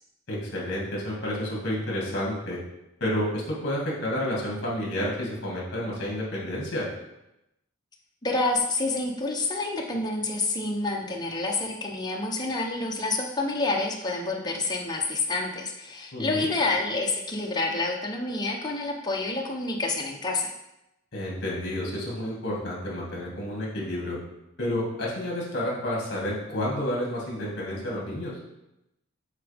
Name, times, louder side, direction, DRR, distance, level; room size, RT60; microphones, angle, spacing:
voice 1, 0.3-2.6 3.0-6.9 16.1-16.5 21.1-24.2 24.6-28.4, left 1 dB, 55° left, -4 dB, 2.2 m, -30 dB
voice 2, 8.2-20.5, left 2 dB, 20° left, 0 dB, 0.8 m, -28 dB
8.3 x 4.0 x 3.5 m, 0.90 s
head